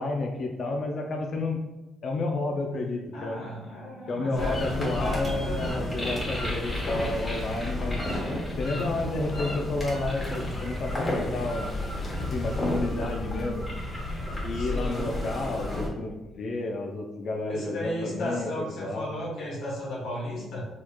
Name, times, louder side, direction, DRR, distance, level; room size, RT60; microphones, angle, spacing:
voice 1, 0.0-1.6 2.0-3.4 4.1-8.0 8.6-11.7 12.3-13.7 14.4-18.5 18.8-19.1, left 2 dB, 55° left, 2 dB, 0.4 m, -31 dB
voice 2, 3.1-5.7 14.5-15.0 17.5-20.6, left 1 dB, 80° left, -5 dB, 1.2 m, -34 dB
sound 1, 4.4-15.9, left 1 dB, 20° left, 1.2 m, -31 dB
sound 2, 5.2-6.3, right 1 dB, 30° right, 0.9 m, -47 dB
4.1 x 2.9 x 2.2 m, 1.1 s
cardioid pair, 90°, 0 cm